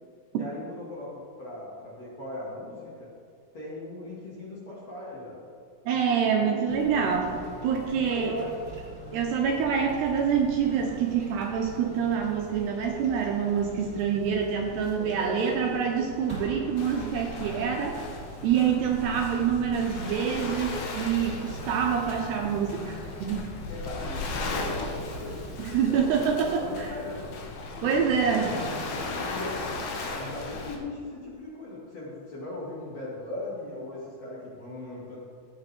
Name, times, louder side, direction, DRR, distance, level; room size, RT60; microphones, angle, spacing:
voice 1, 0.3-3.1 3.5-5.4 5.9-6.8 8.1-8.6 14.9-15.7 23.7-27.3 27.7-28.6 29.2-35.2, left 2 dB, 45° left, -7 dB, 2.5 m, -39 dB
voice 2, 5.9-8.4 9.1-18.1 18.4-23.5 25.6-26.9 27.8-28.5, right 7 dB, 80° right, 1 dB, 2.6 m, -26 dB
sound 1, 6.7-25.5, right 2 dB, 20° right, 2.2 m, -43 dB
Waves surf, 16.8-30.8, left 3 dB, 80° left, 1.8 m, -37 dB
15.0 x 9.1 x 3.5 m, 2.4 s
omnidirectional pair, 5.5 m